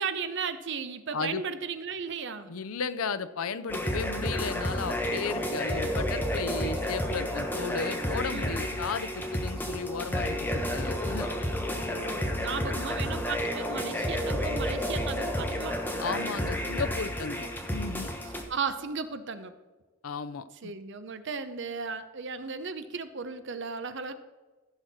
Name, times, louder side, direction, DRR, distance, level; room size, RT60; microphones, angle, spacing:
voice 1, 0.0-2.6 8.3-8.6 11.8-15.8 18.5-19.5 20.6-24.1, right 5 dB, 55° right, 11 dB, 0.8 m, -35 dB
voice 2, 1.1-1.4 2.5-11.3 16.0-18.1 20.0-20.7, left 5 dB, 85° left, 13 dB, 0.6 m, -34 dB
sound 1, 3.7-18.4, equal, 10° left, 1.2 m, -31 dB
15.0 x 6.4 x 4.2 m, 1.3 s
head